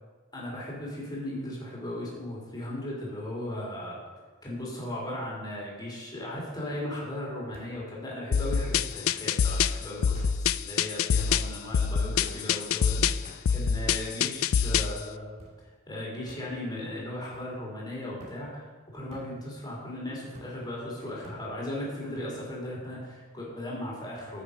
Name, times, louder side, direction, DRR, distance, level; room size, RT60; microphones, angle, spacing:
voice 1, 0.3-4.0 4.4-15.4 15.9-24.4, left 1 dB, 20° left, -4 dB, 3.5 m, -37 dB
sound 1, 4.1-4.5 4.9-5.4 6.5-6.6 7.5-7.8 8.9-9.1 10.1-10.3 11.2-11.4 12.2-12.5 13.2-13.4 14.2-14.6 15.4-15.6 16.3-16.4 17.3-17.5 18.2-18.4 19.1-19.3 20.3-20.5 21.2-21.4, equal, 30° right, 2.1 m, -50 dB
sound 2, 8.3-15.0, left 7 dB, 70° left, 0.4 m, -26 dB
14.0 x 6.7 x 5.2 m, 1.3 s
head